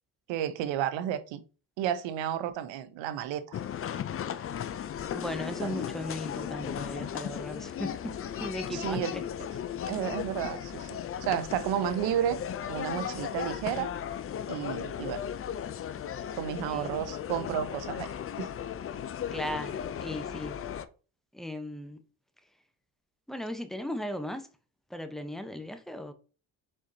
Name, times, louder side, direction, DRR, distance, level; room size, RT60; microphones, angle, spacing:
voice 1, 0.3-1.4 1.8-3.6 5.6-5.7 8.7-9.1 9.9-12.4 12.7-13.9 14.5-15.2 16.4-18.1 18.4-18.5, right 10 dB, 75° right, 0.8 m, -32 dB
sound 1, 3.5-20.9, left 9 dB, 30° left, 0.4 m, -36 dB
voice 2, 5.1-7.9 8.4-9.2 16.7-16.9 19.3-20.6 21.3-22.0 23.3-24.5 24.9-26.1, left 1 dB, ahead, 0.8 m, -37 dB
4.5 x 4.3 x 2.7 m
supercardioid pair, 60°, 45 cm